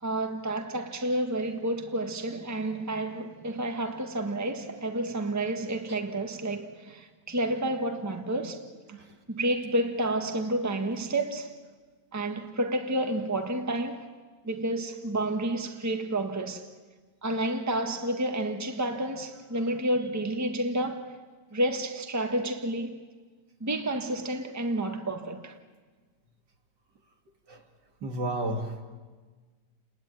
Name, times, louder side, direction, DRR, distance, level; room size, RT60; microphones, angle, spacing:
voice 1, 0.0-8.7 9.3-11.6 12.1-14.1 14.4-16.7 17.2-21.2 21.5-23.0 23.6-25.5, right 1 dB, 10° right, 1.5 m, -30 dB
voice 2, 28.0-28.8, right 1 dB, 70° right, 3.0 m, -31 dB
30.0 x 20.5 x 9.2 m
omnidirectional pair, 1.9 m